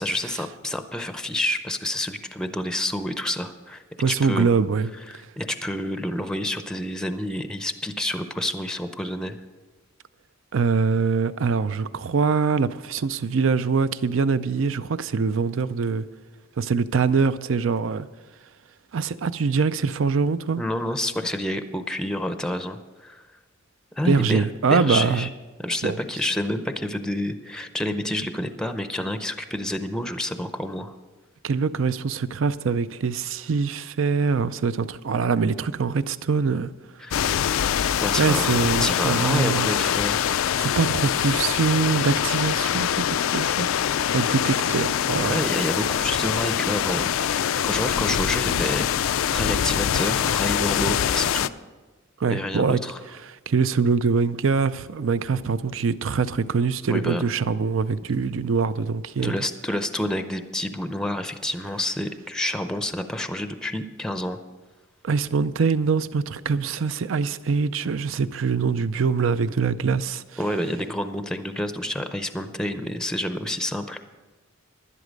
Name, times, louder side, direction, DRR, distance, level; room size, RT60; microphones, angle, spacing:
voice 1, 0.0-4.5 5.1-9.4 20.6-23.2 24.0-25.3 25.6-30.9 37.0-37.4 38.0-40.6 45.2-51.5 52.3-53.0 56.9-57.2 59.2-64.4 70.4-74.0, left 1 dB, 5° left, 0.5 m, -29 dB
voice 2, 4.0-4.9 10.5-16.0 16.6-18.1 18.9-20.6 24.0-25.3 25.8-26.0 31.4-36.7 38.2-39.7 40.6-43.7 44.1-45.5 52.2-52.8 53.2-59.4 65.0-70.2, right 5 dB, 70° right, 0.5 m, -23 dB
sound 1, 37.1-51.5, left 9 dB, 80° left, 0.4 m, -24 dB
11.5 x 11.0 x 5.2 m
head